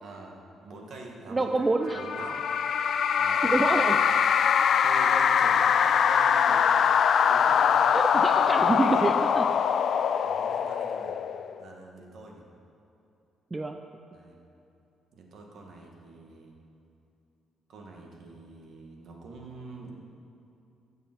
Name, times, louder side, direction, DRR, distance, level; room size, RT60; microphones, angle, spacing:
voice 1, 0.0-1.5 1.9-2.4 3.2-4.2 4.8-6.8 7.3-7.9 8.3-9.1 10.2-11.2 11.6-12.4 14.1-14.4 15.1-16.5 17.7-19.9, right 2 dB, 65° right, 0 dB, 1.8 m, -44 dB
voice 2, 1.3-2.0 3.4-4.1 7.9-9.5 13.5-13.8, right 2 dB, 20° right, 6 dB, 0.5 m, -27 dB
sound 1, 1.9-11.6, left 7 dB, 60° left, 0.4 m, -23 dB
15.5 x 7.0 x 4.5 m, 2.8 s
cardioid pair, 90°, 0 cm